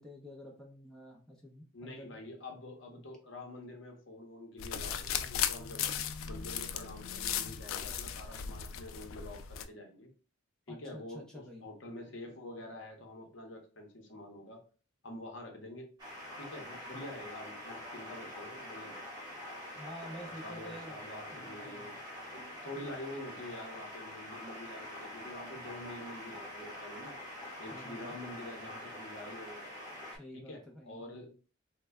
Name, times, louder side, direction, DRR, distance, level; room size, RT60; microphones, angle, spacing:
voice 1, 0.0-2.2 10.7-11.6 19.8-22.0 27.7-28.1 30.1-31.3, equal, 5° left, -1 dB, 0.5 m, -49 dB
voice 2, 1.7-5.9 6.3-10.1 10.7-14.6 15.0-15.9 16.4-19.0 20.3-21.9 22.3-27.2 27.6-29.7 30.3-31.5, left 1 dB, 65° left, 2 dB, 0.8 m, -47 dB
sound 1, 4.6-9.7, left 9 dB, 80° left, 0.3 m, -36 dB
sound 2, 16.0-30.2, left 1 dB, 20° right, 1.2 m, -45 dB
3.2 x 2.1 x 3.4 m, 0.37 s
head